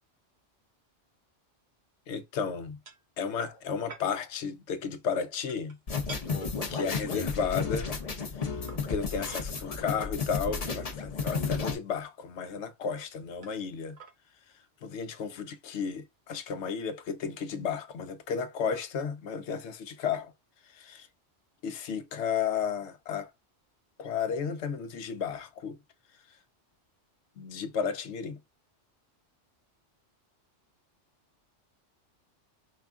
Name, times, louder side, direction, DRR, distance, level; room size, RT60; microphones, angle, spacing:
voice 1, 2.1-2.8 3.2-5.7 6.7-7.9 8.9-14.0 14.8-20.3 20.7-21.1 21.6-23.3 24.0-25.8 27.4-28.4, left 6 dB, 70° left, 0.9 m, -33 dB
sound 1, 2.8-3.0 3.4-3.6 3.9-4.1 5.5-5.8 6.1-6.2 7.5-7.6 8.7-9.5 10.3-10.4 10.7-11.4 12.2-12.3 13.4-13.7 13.9-14.1, right 3 dB, 45° right, 0.9 m, -46 dB
sound 2, 5.9-11.7, left 5 dB, 35° left, 0.7 m, -32 dB
5.0 x 2.3 x 3.5 m
omnidirectional pair, 1.2 m